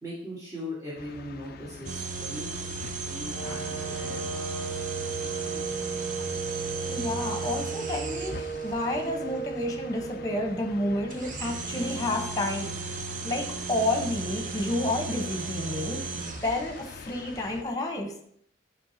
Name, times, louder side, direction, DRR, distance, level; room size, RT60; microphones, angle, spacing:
voice 1, 0.0-4.2, left 1 dB, 20° right, -8 dB, 1.8 m, -40 dB
sound 1, 1.0-17.6, left 5 dB, 50° left, 0.4 m, -45 dB
sound 2, 1.9-8.8 11.1-16.9, right 4 dB, 45° right, 0.5 m, -36 dB
sound 3, 3.3-11.3, right 5 dB, 75° right, 3.1 m, -36 dB
voice 2, 6.8-12.8 13.2-18.3, left 1 dB, 20° left, 3 dB, 1.2 m, -30 dB
11.0 x 4.6 x 2.9 m, 0.66 s
head